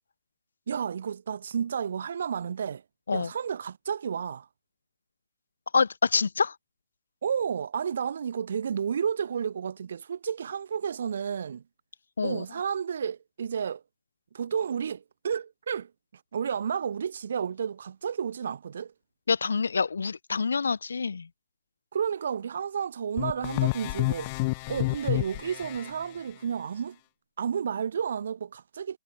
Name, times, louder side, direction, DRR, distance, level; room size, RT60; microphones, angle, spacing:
voice 1, 0.7-2.8 3.1-4.5 7.2-11.6 12.2-13.8 14.3-15.9 16.3-18.9 21.9-24.3 24.7-27.0 27.4-29.0, right 7 dB, 60° right, 1.7 m, -31 dB
voice 2, 5.7-6.6 12.2-12.4 19.3-21.3, left 5 dB, 75° left, 0.7 m, -26 dB
sound 1, 23.2-25.9, left 25 dB, 30° left, 0.8 m, -29 dB
hypercardioid pair, 150°, 0 cm